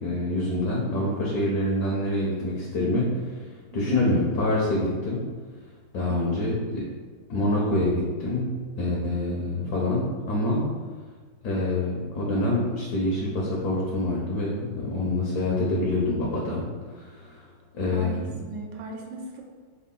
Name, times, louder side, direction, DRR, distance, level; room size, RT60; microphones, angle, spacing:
voice 1, 0.0-3.4 3.7-5.2 5.9-6.8 7.3-8.5 8.8-10.6 11.4-17.4 17.7-18.3, left 1 dB, 65° left, -4 dB, 1.1 m, -26 dB
voice 2, 3.7-4.1 6.3-6.4 17.9-19.4, right 3 dB, 80° right, 1 dB, 1.3 m, -37 dB
3.7 x 2.2 x 3.6 m, 1.5 s
omnidirectional pair, 2.0 m